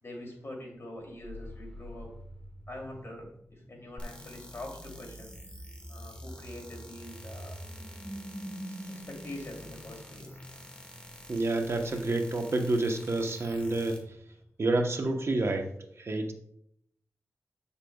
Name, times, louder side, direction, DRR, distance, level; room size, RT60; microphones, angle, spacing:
voice 1, 0.0-2.1 2.7-5.3 5.9-7.6 8.9-10.4, left 1 dB, 50° left, -1 dB, 2.8 m, -44 dB
sound 1, 1.2-14.5, equal, 5° left, 1.2 m, -47 dB
sound 2, 4.0-14.0, left 1 dB, 20° left, 1.9 m, -50 dB
voice 2, 11.3-14.0 14.6-15.7 16.0-16.3, right 2 dB, 55° right, 3 dB, 1.0 m, -28 dB
8.9 x 6.8 x 2.3 m, 0.70 s
wide cardioid pair, 65°, 5 cm